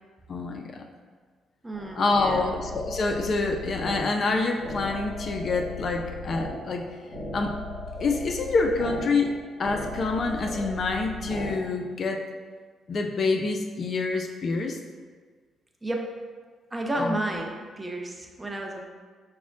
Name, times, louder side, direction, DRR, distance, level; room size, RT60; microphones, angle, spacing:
voice 1, 0.3-0.9 2.0-6.8 7.3-7.5 8.0-9.3 9.6-12.3 12.9-14.8 17.0-17.2, left 3 dB, 50° left, 3 dB, 0.3 m, -27 dB
voice 2, 1.6-2.5 15.8-16.1 16.7-18.8, right 1 dB, 15° right, 1 dB, 0.5 m, -31 dB
sound 1, 1.7-11.5, left 1 dB, 75° left, 1.1 m, -37 dB
5.9 x 2.0 x 2.5 m, 1.5 s
cardioid pair, 90°, 0 cm